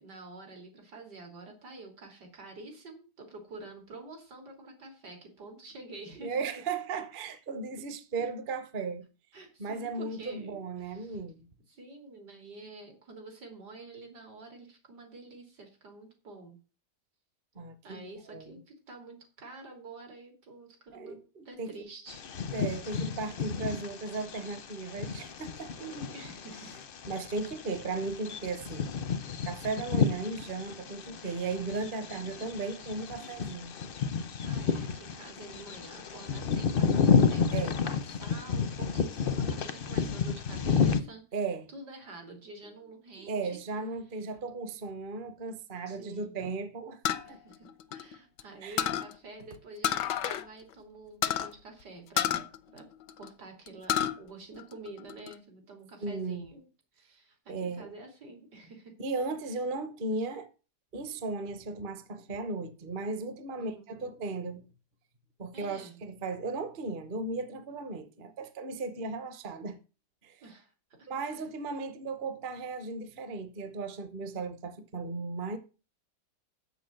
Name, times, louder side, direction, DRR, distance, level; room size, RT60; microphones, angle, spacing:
voice 1, 0.0-6.5 8.2-8.3 9.3-11.2 11.7-16.6 17.8-21.2 21.5-22.3 22.9-23.2 25.8-26.7 32.8-32.9 34.4-41.2 41.7-43.6 45.9-46.5 47.2-47.7 47.9-52.5 52.7-52.9 53.2-56.7 56.9-58.9 60.2-60.3 63.6-63.9 65.5-66.0 70.4-71.4, right 2 dB, 75° right, 3.6 m, -48 dB
voice 2, 6.2-9.1 9.6-11.4 17.6-18.6 20.9-21.7 22.5-25.8 27.1-28.9 29.4-33.7 37.5-37.8 41.3-41.7 43.2-47.4 48.6-48.8 56.0-56.4 57.5-57.9 59.0-60.5 60.9-64.6 65.4-69.8 70.2-70.4 71.1-75.6, right 3 dB, 35° right, 0.9 m, -36 dB
Bird vocalization bird call bird song, 22.1-41.0, left 6 dB, 50° left, 0.6 m, -31 dB
sound 1, 47.0-48.4 48.8-49.1 49.8-50.5 50.7-50.8 51.2-51.5 52.2-53.3 53.7-54.2 54.6-55.3, left 10 dB, 90° left, 1.4 m, -30 dB
7.1 x 7.0 x 7.7 m
omnidirectional pair, 1.8 m